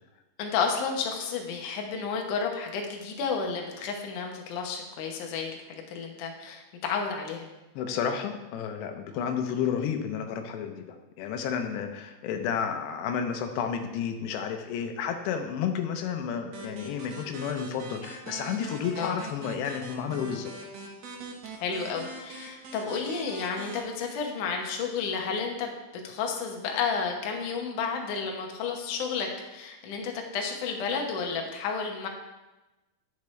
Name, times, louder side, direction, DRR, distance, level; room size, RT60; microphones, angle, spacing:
voice 1, 0.4-7.5 19.0-19.2 21.6-25.7 26.0-32.1, left 5 dB, 65° left, 2 dB, 2.1 m, -31 dB
voice 2, 7.8-20.5, left 7 dB, 85° left, 5 dB, 2.9 m, -31 dB
sound 1, 16.5-23.8, right 3 dB, 80° right, 1.5 m, -43 dB
10.5 x 8.0 x 3.2 m, 1.1 s
omnidirectional pair, 4.8 m